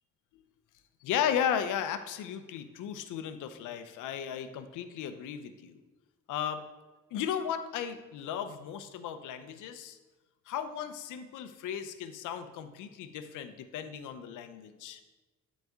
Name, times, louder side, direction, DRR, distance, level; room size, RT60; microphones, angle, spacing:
voice 1, 1.0-5.8 6.3-6.6 7.1-10.0 10.5-15.0, left 9 dB, 85° left, 9 dB, 0.6 m, -35 dB
9.3 x 4.1 x 3.5 m, 1.2 s
cardioid pair, 90°, 30 cm